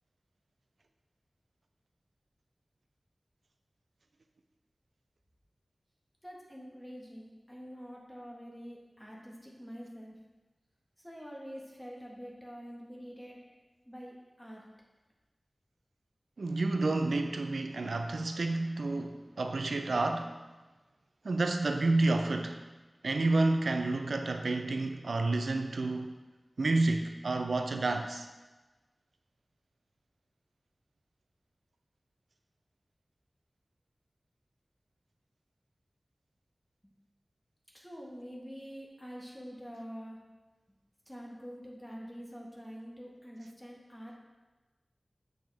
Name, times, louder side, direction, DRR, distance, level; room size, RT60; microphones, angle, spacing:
voice 1, 6.2-10.2 11.0-13.4 13.8-14.6 37.7-40.2 41.0-44.2, equal, 5° left, -2 dB, 1.5 m, -46 dB
voice 2, 16.4-20.4 21.2-22.6 23.0-26.1 26.6-28.3, right 2 dB, 90° right, 6 dB, 0.4 m, -30 dB
7.6 x 5.2 x 3.5 m, 1.2 s
wide cardioid pair, 70°, 0 cm